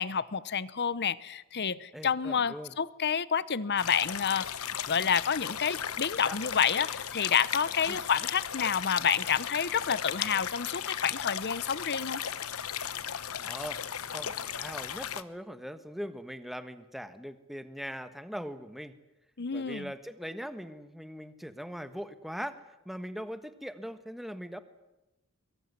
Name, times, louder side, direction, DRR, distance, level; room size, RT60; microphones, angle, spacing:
voice 1, 0.0-4.5 4.9-12.2 19.4-19.9, left 7 dB, 50° left, 18 dB, 0.9 m, -29 dB
voice 2, 1.9-2.7 6.2-6.4 7.9-8.0 13.4-13.8 14.1-18.9 19.5-24.6, equal, ahead, 10 dB, 1.4 m, -41 dB
sound 1, 3.8-15.2, left 9 dB, 75° left, 1.0 m, -36 dB
23.0 x 23.0 x 9.5 m, 0.97 s
head